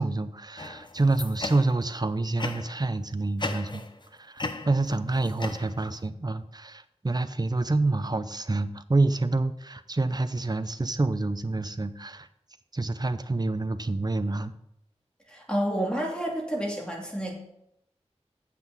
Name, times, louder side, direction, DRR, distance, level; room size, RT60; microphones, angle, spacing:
voice 1, 0.0-3.8 4.2-12.3 12.7-14.5, right 2 dB, 35° right, 11 dB, 0.6 m, -27 dB
sound 1, 0.6-1.9 2.4-2.9 3.4-4.1 4.4-6.1, left 3 dB, 40° left, 0.8 m, -36 dB
voice 2, 15.3-17.3, right 1 dB, 10° left, -2 dB, 2.7 m, -29 dB
8.2 x 5.9 x 6.1 m, 0.78 s
wide cardioid pair, 45°, 11 cm